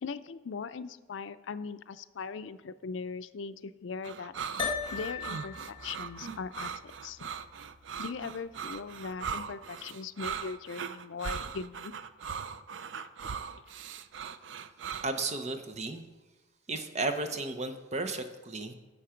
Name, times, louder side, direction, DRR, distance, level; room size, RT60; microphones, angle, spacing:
voice 1, 0.0-4.6 4.9-7.3 8.0-11.9 13.0-13.1, left 5 dB, 85° left, 13 dB, 0.4 m, -40 dB
sound 1, 4.0-15.3, right 6 dB, 75° right, 0.4 m, -39 dB
sound 2, 4.6-9.2, left 6 dB, 25° left, 1.3 m, -40 dB
voice 2, 15.0-16.0 16.7-18.7, right 3 dB, 40° right, 8 dB, 0.8 m, -34 dB
10.0 x 7.0 x 5.0 m, 1.3 s
head